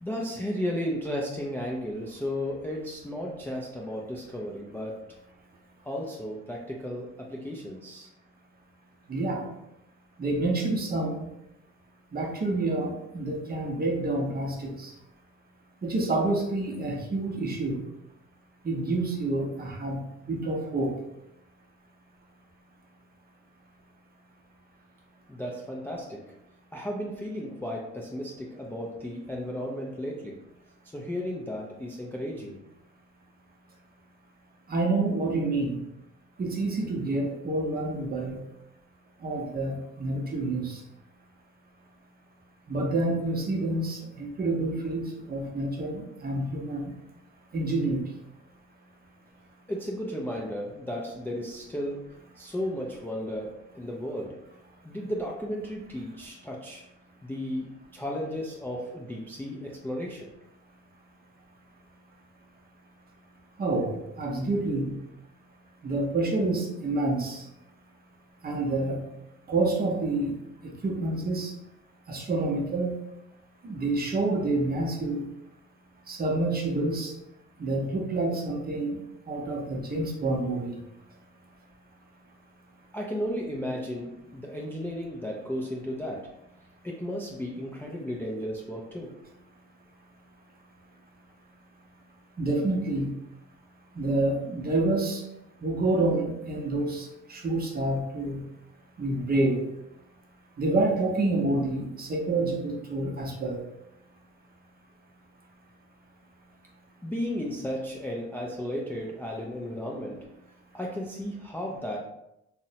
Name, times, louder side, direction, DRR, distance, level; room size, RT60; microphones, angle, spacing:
voice 1, 0.0-5.1 5.8-8.1 25.3-26.4 26.7-30.4 30.8-32.6 49.7-54.4 54.8-56.8 57.2-60.3 82.9-86.4 86.8-89.2 107.0-110.3 110.7-112.0, equal, 5° left, -2 dB, 0.3 m, -34 dB
voice 2, 9.1-9.4 10.2-11.3 12.1-14.9 15.8-17.8 18.6-20.9 34.7-35.8 36.4-38.4 39.2-40.8 42.7-46.9 47.5-48.0 63.6-63.9 64.2-64.9 65.8-67.4 68.4-69.0 69.5-70.3 70.6-71.5 72.1-72.9 73.6-75.2 76.1-77.1 77.6-79.0 79.3-80.8 92.4-93.1 94.0-95.2 95.6-98.4 99.0-99.6 100.6-103.6, right 2 dB, 30° right, 1 dB, 0.6 m, -28 dB
2.8 x 2.1 x 2.7 m, 0.84 s
cardioid pair, 90°, 30 cm